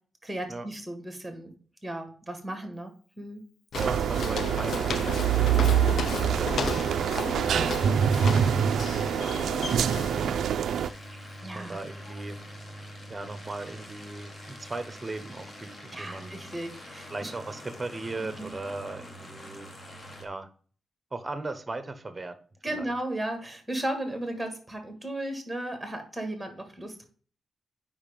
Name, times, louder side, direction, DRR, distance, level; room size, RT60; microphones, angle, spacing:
voice 1, 0.2-3.4 11.4-11.8 12.1-12.2 15.9-17.3 18.4-18.5 22.6-27.0, right 1 dB, 5° right, 5 dB, 1.8 m, -35 dB
Walk footsteps, 3.7-10.4, left 6 dB, 65° left, 0.6 m, -35 dB
voice 2, 3.7-6.8 7.4-10.7 11.1-11.2 11.5-12.4 13.1-16.4 17.1-19.7 20.2-20.5 21.1-22.4 22.7-22.9, right 2 dB, 20° right, 9 dB, 1.0 m, -38 dB
sound 1, 3.7-10.9, right 8 dB, 90° right, 0.3 m, -25 dB
sound 2, 4.6-20.2, left 1 dB, 30° left, 1.3 m, -45 dB
7.2 x 5.4 x 5.2 m, 0.43 s
wide cardioid pair, 155°, 0 cm